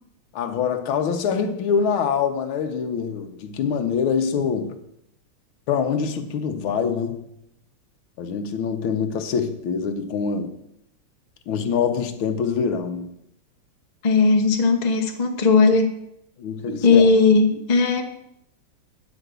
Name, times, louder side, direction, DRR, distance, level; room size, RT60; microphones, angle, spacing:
voice 1, 0.3-4.8 5.7-7.3 8.2-10.5 11.5-13.1 16.4-17.1, left 6 dB, 75° left, 1.7 m, -25 dB
voice 2, 14.0-15.9 16.7-18.0, left 4 dB, 35° left, 0.7 m, -17 dB
9.9 x 5.2 x 8.0 m
omnidirectional pair, 2.3 m